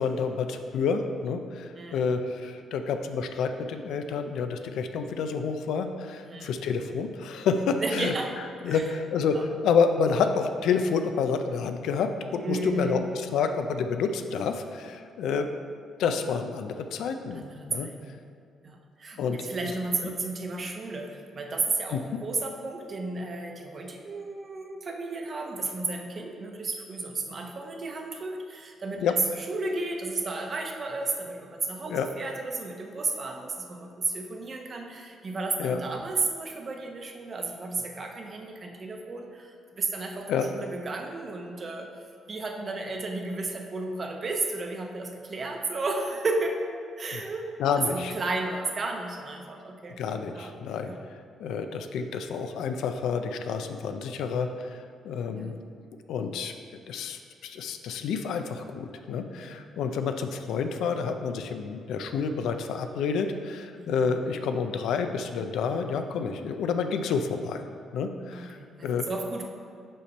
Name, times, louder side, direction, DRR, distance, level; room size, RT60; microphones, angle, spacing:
voice 1, 0.0-8.1 8.6-15.5 16.0-17.4 17.7-17.9 19.2-19.4 21.9-22.2 29.0-29.1 31.9-32.1 35.6-35.8 40.3-40.5 47.1-47.2 47.6-48.1 50.0-50.9 51.4-55.6 56.1-56.5 56.9-67.7 67.9-69.1, left 5 dB, 80° left, 7 dB, 0.4 m, -29 dB
voice 2, 7.8-8.3 8.7-8.8 9.3-9.5 12.4-13.1 17.3-18.2 18.6-40.3 40.5-41.9 42.3-47.5 47.8-50.0 50.3-50.5 50.8-51.0 55.3-55.5 59.5-59.8 63.7-63.9 68.3-69.4, right 3 dB, 40° right, 2 dB, 0.8 m, -33 dB
5.5 x 5.1 x 4.2 m, 2.3 s
cardioid pair, 90°, 0 cm